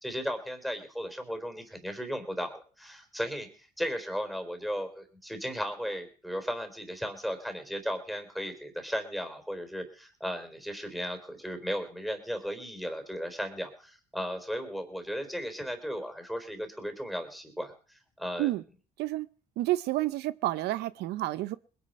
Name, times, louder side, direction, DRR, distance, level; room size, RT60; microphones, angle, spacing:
voice 1, 0.0-18.5, equal, ahead, 3.9 m, -36 dB
voice 2, 19.6-21.6, right 16 dB, 80° right, 0.7 m, -29 dB
20.5 x 9.7 x 5.5 m
cardioid pair, 110°, 17 cm